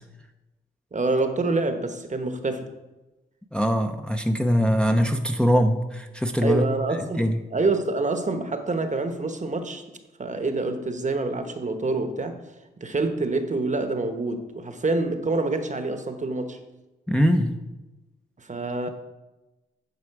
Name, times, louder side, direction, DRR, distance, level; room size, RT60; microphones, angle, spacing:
voice 1, 0.9-2.7 6.4-9.8 10.2-12.4 12.8-16.6 18.4-18.9, right 3 dB, 35° right, 7 dB, 1.0 m, -26 dB
voice 2, 3.5-6.7 7.2-7.4 17.1-17.6, equal, 5° left, 5 dB, 0.7 m, -22 dB
9.8 x 4.9 x 4.7 m, 1.1 s
cardioid pair, 65°, 21 cm